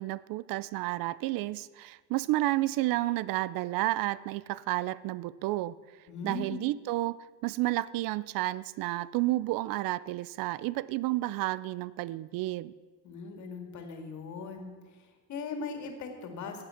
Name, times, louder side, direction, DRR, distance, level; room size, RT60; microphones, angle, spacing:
voice 1, 0.0-5.8 6.2-12.7, right 17 dB, 70° right, 20 dB, 0.5 m, -31 dB
voice 2, 6.1-6.7 13.0-16.6, left 4 dB, 55° left, 5 dB, 2.2 m, -40 dB
16.0 x 8.8 x 5.8 m, 1.5 s
cardioid pair, 145°, 36 cm